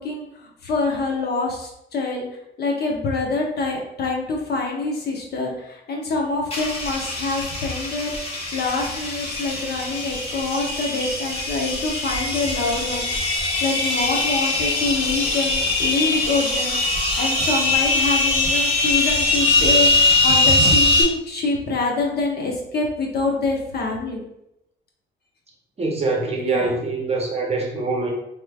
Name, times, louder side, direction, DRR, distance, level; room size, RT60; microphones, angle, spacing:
voice 1, 0.0-2.3 2.6-24.2 26.4-26.8, left 3 dB, 55° left, 0 dB, 0.9 m, -26 dB
sound 1, 6.5-21.0, left 2 dB, 30° left, 1.0 m, -22 dB
voice 2, 25.8-28.1, right 3 dB, 30° right, -1 dB, 0.7 m, -24 dB
3.5 x 3.1 x 2.3 m, 0.83 s
cardioid pair, 90°, 20 cm